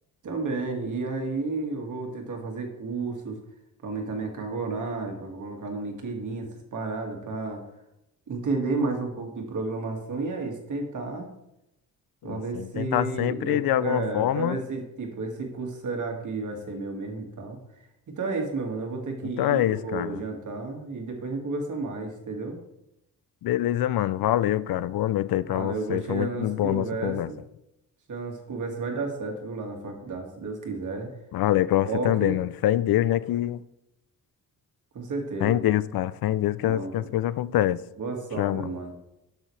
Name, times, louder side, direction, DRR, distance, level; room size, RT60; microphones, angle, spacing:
voice 1, 0.2-3.4 3.8-7.6 8.3-11.3 12.2-17.6 18.1-22.6 25.5-27.4 28.1-31.1 31.8-32.4 34.9-35.6 36.6-37.1 38.0-39.0, right 3 dB, 60° right, 2.0 m, -32 dB
voice 2, 12.2-14.6 19.4-20.2 23.4-27.3 31.3-33.6 35.4-37.8 38.4-38.6, left 13 dB, 85° left, 0.5 m, -25 dB
12.5 x 6.2 x 3.2 m
wide cardioid pair, 145°, 35 cm